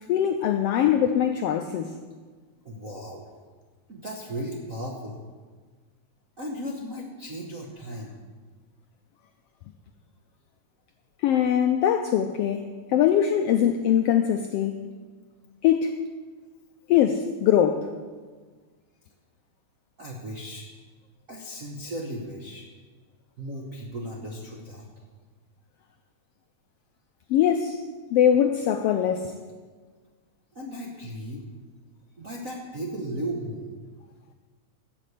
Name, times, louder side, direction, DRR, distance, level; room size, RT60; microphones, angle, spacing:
voice 1, 0.1-1.9 11.2-14.8 15.6-16.0 16.9-17.9 27.3-27.8 28.1-29.3, left 9 dB, 90° left, 7 dB, 1.3 m, -22 dB
voice 2, 2.6-3.2 3.9-5.2 6.4-8.2 20.0-20.7 21.3-22.7 23.4-24.9 30.5-31.4 32.2-33.8, right 1 dB, 65° right, -1 dB, 0.8 m, -36 dB
13.0 x 6.3 x 8.2 m, 1.5 s
omnidirectional pair, 3.3 m